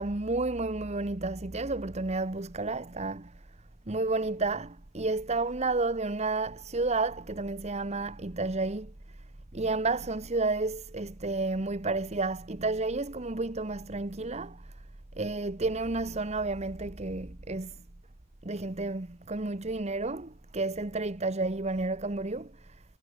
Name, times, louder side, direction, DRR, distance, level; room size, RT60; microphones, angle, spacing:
voice 1, 0.0-3.4 3.9-8.9 9.5-14.7 15.1-17.8 18.4-22.8, right 3 dB, 35° right, 1.1 m, -31 dB
head